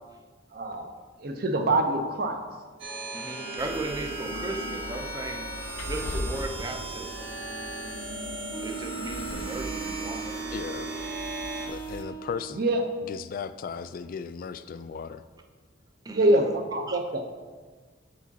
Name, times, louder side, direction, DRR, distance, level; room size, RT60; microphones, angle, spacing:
voice 1, 0.5-0.9 1.2-2.4 12.5-12.8 16.1-17.3, right 1 dB, 50° right, 5 dB, 0.7 m, -25 dB
sound 1, 2.8-11.7, right 2 dB, 90° right, 1.4 m, -37 dB
voice 2, 3.1-5.5 5.8-7.3 8.6-10.5 16.0-16.4 16.9-17.0, right 2 dB, 20° right, 4 dB, 0.5 m, -36 dB
sound 2, 3.6-12.0, left 1 dB, 90° left, 0.7 m, -40 dB
Wind instrument woodwind instrument, 8.5-12.6, right 6 dB, 20° left, 0.7 m, -38 dB
voice 3, 10.5-11.0 11.6-12.6 13.0-15.2, left 6 dB, 50° left, 13 dB, 0.3 m, -36 dB
7.9 x 4.9 x 4.1 m, 1.4 s
head